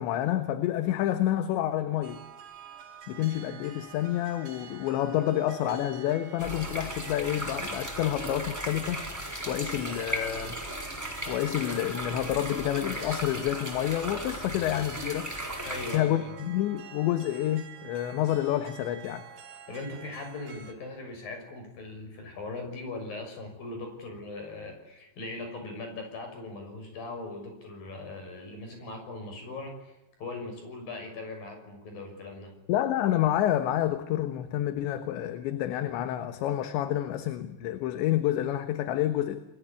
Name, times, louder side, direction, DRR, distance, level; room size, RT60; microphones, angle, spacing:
voice 1, 0.0-2.2 3.1-9.1 9.5-10.6 11.3-15.3 15.9-19.3 32.7-39.4, left 12 dB, 75° left, 3.5 m, -28 dB
sound 1, 2.0-20.7, right 7 dB, 50° right, 5.1 m, -48 dB
sound 2, 6.4-16.0, equal, 5° right, 5.5 m, -36 dB
voice 2, 15.6-16.3 19.7-32.5, left 2 dB, 50° left, 8.0 m, -40 dB
29.5 x 22.5 x 8.5 m
omnidirectional pair, 5.5 m